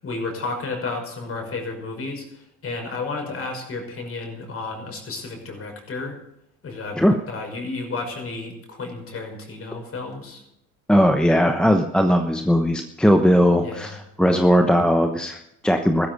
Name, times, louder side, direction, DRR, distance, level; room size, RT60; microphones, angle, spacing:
voice 1, 0.0-6.2 6.6-10.4 13.6-14.0, left 3 dB, 35° left, 3 dB, 5.7 m, -32 dB
voice 2, 10.9-13.9 14.2-16.1, equal, ahead, 5 dB, 1.0 m, -18 dB
14.5 x 13.0 x 5.3 m, 0.79 s
supercardioid pair, 100°, 38 cm